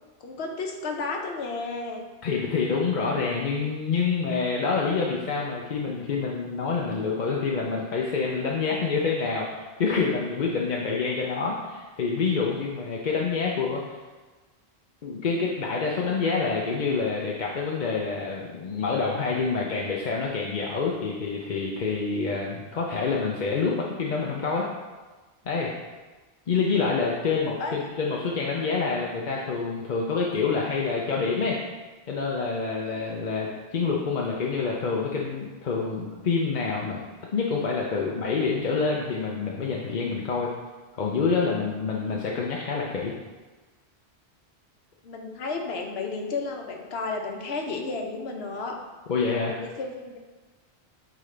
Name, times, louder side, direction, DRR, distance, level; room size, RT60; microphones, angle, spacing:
voice 1, 0.2-2.1 27.2-27.8 28.5-28.7 32.9-33.2 45.0-48.8 49.4-50.2, left 3 dB, 75° left, 2 dB, 1.1 m, -33 dB
voice 2, 2.2-14.0 15.0-24.7 25.5-25.7 26.5-31.6 32.1-37.0 37.3-40.5 41.0-43.1 49.1-49.6, left 4 dB, 50° left, -3 dB, 0.7 m, -27 dB
8.6 x 3.9 x 3.3 m, 1.3 s
omnidirectional pair, 1.1 m